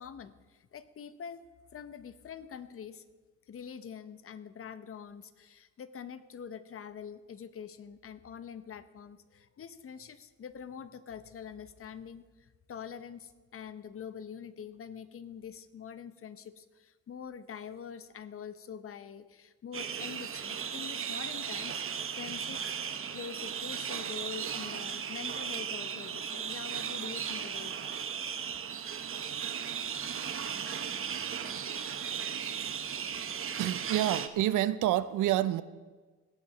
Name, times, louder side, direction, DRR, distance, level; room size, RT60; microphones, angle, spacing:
voice 1, 0.0-1.4 1.7-3.0 3.5-28.0, left 7 dB, 45° left, 13 dB, 0.9 m, -45 dB
sound 1, 19.7-34.3, right 7 dB, 45° right, 1.0 m, -36 dB
voice 2, 33.6-35.6, right 13 dB, 85° right, 15 dB, 0.7 m, -28 dB
17.0 x 7.5 x 6.1 m, 1.3 s
cardioid pair, 90°, 30 cm